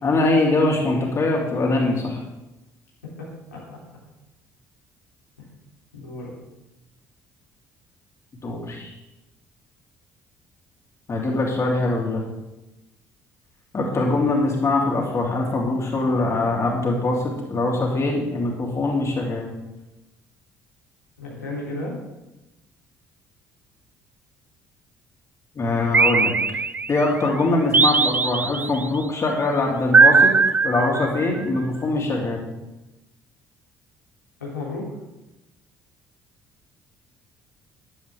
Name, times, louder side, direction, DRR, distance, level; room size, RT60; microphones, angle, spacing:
voice 1, 0.0-2.2 8.4-8.9 11.1-12.2 13.7-19.5 25.6-26.3 26.9-30.3 30.6-32.4, left 2 dB, 35° left, -2 dB, 3.5 m, -22 dB
voice 2, 3.2-3.6 5.4-5.5 5.9-6.3 21.2-22.0 34.4-34.9, left 2 dB, 85° left, -6 dB, 3.2 m, -33 dB
sound 1, 25.9-27.1 27.7-28.9 29.9-31.4, right 4 dB, 20° right, 0.5 m, -18 dB
13.5 x 11.5 x 3.6 m, 0.97 s
figure-of-eight pair, 50°, 8 cm